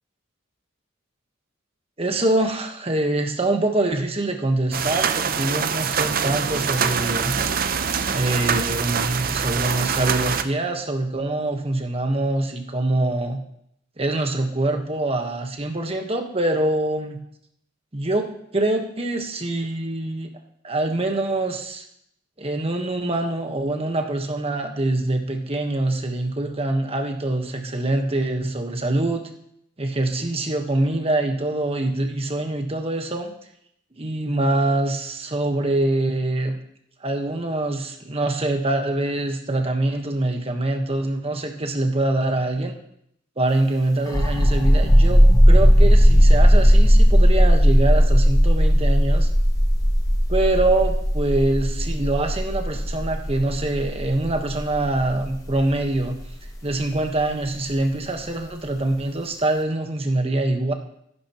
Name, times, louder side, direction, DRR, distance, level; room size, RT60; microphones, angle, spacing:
voice 1, 2.0-7.4 8.1-13.4 14.0-17.2 17.9-20.3 20.6-21.8 22.4-29.2 29.8-33.3 34.0-36.6 37.0-42.7 43.4-45.2 45.5-49.3 50.3-56.2 56.6-60.7, right 2 dB, 30° right, 4 dB, 1.3 m, -24 dB
sound 1, 4.7-10.4, right 6 dB, 45° right, 0.6 m, -24 dB
sound 2, 44.1-57.4, equal, 15° left, 1.2 m, -16 dB
14.0 x 11.5 x 3.1 m, 0.72 s
head